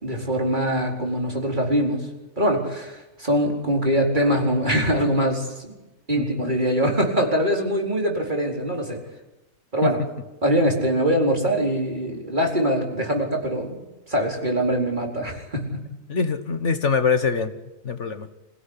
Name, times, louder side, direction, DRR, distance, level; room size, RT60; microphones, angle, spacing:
voice 1, 0.0-2.1 2.4-5.7 6.1-9.0 9.7-10.0 10.4-13.8 14.1-15.8, equal, 35° right, 1 dB, 4.6 m, -23 dB
voice 2, 6.1-6.5 9.8-9.9 16.1-17.5 17.8-18.3, left 5 dB, 60° left, 9 dB, 1.6 m, -24 dB
26.0 x 17.5 x 9.9 m, 1.0 s
omnidirectional pair, 1.4 m